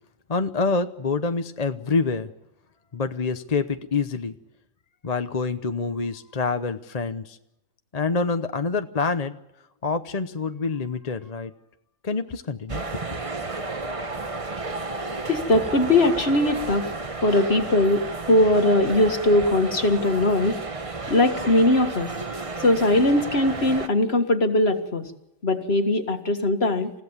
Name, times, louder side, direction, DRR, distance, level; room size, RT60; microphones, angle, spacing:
voice 1, 0.3-2.3 2.9-4.3 5.0-7.4 7.9-9.4 9.8-11.5 12.0-13.0, left 4 dB, 35° left, 8 dB, 0.9 m, -26 dB
sound 1, 12.7-23.9, right 3 dB, 25° right, 1.2 m, -32 dB
voice 2, 15.3-16.9 17.2-20.6 21.1-22.1 22.6-25.1 25.4-26.9, left 1 dB, 50° left, 7 dB, 2.1 m, -20 dB
29.0 x 16.5 x 7.4 m, 0.89 s
omnidirectional pair, 1.4 m